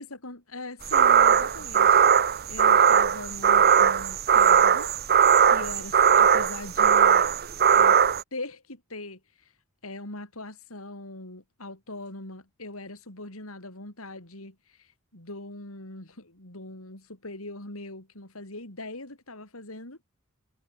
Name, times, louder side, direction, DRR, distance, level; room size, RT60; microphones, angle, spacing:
voice 1, 0.0-5.2 5.4-7.3 7.7-8.0 8.3-9.5 9.8-20.0, left 2 dB, 80° left, 6.4 m, -41 dB
sound 1, 0.9-8.2, right 7 dB, 50° right, 1.2 m, -19 dB
head